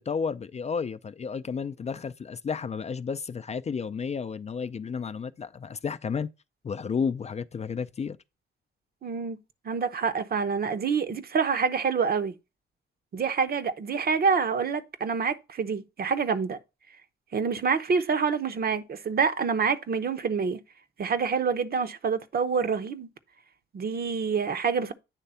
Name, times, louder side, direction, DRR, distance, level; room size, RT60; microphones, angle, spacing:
voice 1, 0.1-6.3 6.6-8.2, left 6 dB, 35° left, 0.4 m, -32 dB
voice 2, 9.0-9.4 9.6-12.3 13.1-16.6 17.3-20.6 21.0-23.1 23.7-24.9, right 5 dB, 50° right, 0.9 m, -27 dB
9.0 x 3.3 x 5.5 m
cardioid pair, 90°, 20 cm